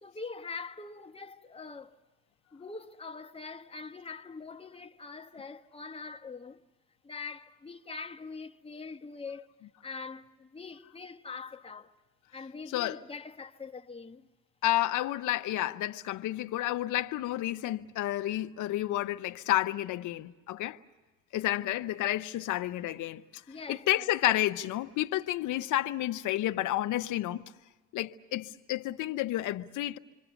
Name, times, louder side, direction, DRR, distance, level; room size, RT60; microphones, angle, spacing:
voice 1, 0.0-2.0 2.5-6.6 7.0-9.5 9.8-11.9 12.3-14.3 23.5-24.1, left 4 dB, 20° left, 1.2 m, -43 dB
voice 2, 14.6-20.8 21.3-23.2 23.7-27.4 27.9-30.0, left 14 dB, 85° left, 0.8 m, -30 dB
27.5 x 24.5 x 7.1 m
cardioid pair, 90°, 30 cm